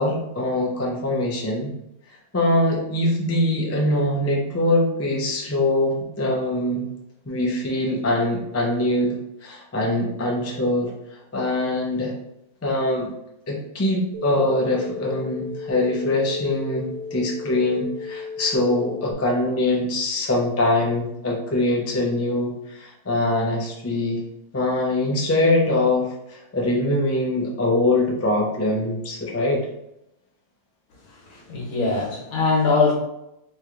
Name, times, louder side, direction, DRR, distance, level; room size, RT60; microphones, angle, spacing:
voice 1, 0.0-1.7 2.3-6.8 7.3-9.1 9.4-10.9 11.3-12.1 12.6-13.1 13.5-24.2 24.5-29.7, left 1 dB, 20° left, -2 dB, 0.3 m, -23 dB
sound 1, 14.1-19.1, left 5 dB, 70° right, 0.9 m, -35 dB
voice 2, 31.1-32.9, left 4 dB, 75° left, -2 dB, 1.5 m, -22 dB
3.2 x 3.1 x 3.7 m, 0.84 s
omnidirectional pair, 1.6 m